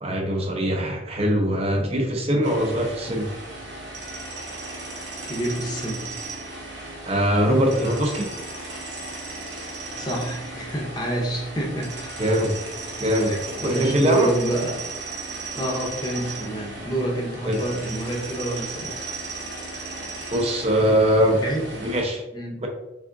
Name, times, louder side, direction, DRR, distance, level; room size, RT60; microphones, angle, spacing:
voice 1, 0.0-3.3 7.1-8.3 12.2-12.6 13.0-14.3 17.5-17.6 20.3-21.4 21.8-22.2 22.6-22.7, equal, 30° right, 2 dB, 0.6 m, -22 dB
sound 1, 2.4-22.0, right 2 dB, 70° right, 0.9 m, -36 dB
voice 2, 5.2-6.1 9.9-12.1 13.0-13.4 13.6-14.8 15.5-18.9 21.4-21.7 22.3-22.6, right 1 dB, 20° left, 0 dB, 0.7 m, -28 dB
3.6 x 3.4 x 2.5 m, 0.92 s
head